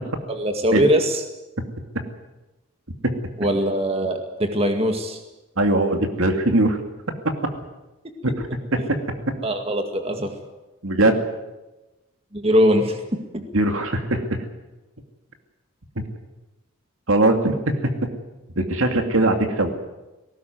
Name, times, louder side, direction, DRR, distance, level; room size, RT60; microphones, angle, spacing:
voice 1, 0.3-1.2 3.4-5.2 9.4-10.3 12.3-13.0 13.3-13.4, equal, 25° right, 5 dB, 2.1 m, -21 dB
voice 2, 5.6-6.8 8.2-9.0 10.8-11.2 13.5-14.2 16.0-16.1 17.1-17.9 18.6-19.7, right 2 dB, 70° right, 5 dB, 2.5 m, -20 dB
19.0 x 18.0 x 9.5 m, 1.1 s
head